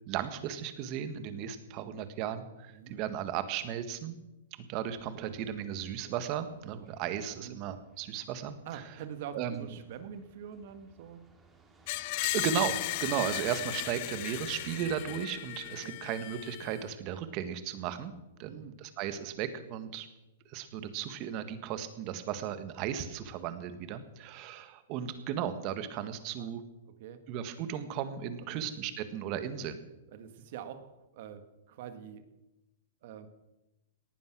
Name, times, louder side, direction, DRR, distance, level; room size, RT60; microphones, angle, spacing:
voice 1, 0.1-4.2 4.6-8.9 9.3-9.7 12.2-12.7 13.0-18.1 18.4-20.1 20.5-26.6 27.3-29.8, right 9 dB, 40° right, 10 dB, 1.7 m, -35 dB
sound 1, 4.8-15.3, right 3 dB, 10° right, 2.5 m, -56 dB
voice 2, 8.7-11.2 15.8-16.0 18.4-18.7 20.7-20.9 26.4-26.5 27.0-27.2 28.5-28.7 30.1-32.2 33.0-33.3, right 8 dB, 55° right, 9 dB, 1.8 m, -45 dB
Screech, 11.9-16.8, left 20 dB, 45° left, 0.4 m, -36 dB
18.5 x 11.0 x 6.2 m, 0.97 s
hypercardioid pair, 145°, 0 cm